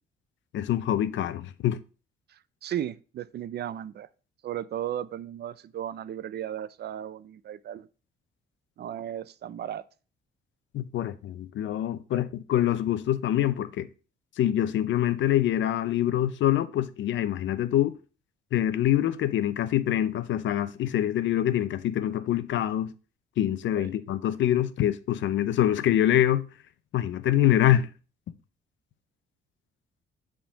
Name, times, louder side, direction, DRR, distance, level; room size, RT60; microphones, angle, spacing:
voice 1, 0.5-1.8 10.7-13.9 14.4-18.0 18.5-22.9 23.4-26.5 26.9-27.9, left 12 dB, 70° left, 0.6 m, -25 dB
voice 2, 2.3-4.1 4.4-7.9 8.8-9.8 23.8-24.0, right 11 dB, 55° right, 0.5 m, -35 dB
7.0 x 3.8 x 5.1 m
cardioid pair, 90°, 20 cm